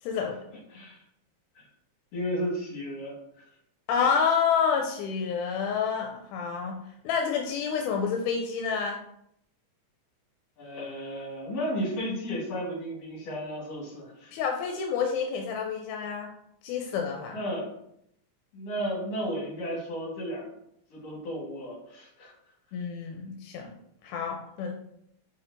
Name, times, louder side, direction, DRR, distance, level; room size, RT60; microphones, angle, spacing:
voice 1, 0.0-0.4 3.9-9.0 14.3-16.3 16.6-17.4 22.7-23.7 24.0-24.7, left 6 dB, 85° left, 2 dB, 2.0 m, -28 dB
voice 2, 0.7-1.0 1.6-1.7 2.1-3.4 10.6-14.3 17.3-17.7 18.5-20.5 20.9-22.3, equal, 60° left, -3 dB, 2.3 m, -34 dB
4.6 x 4.2 x 2.6 m, 0.75 s
omnidirectional pair, 3.5 m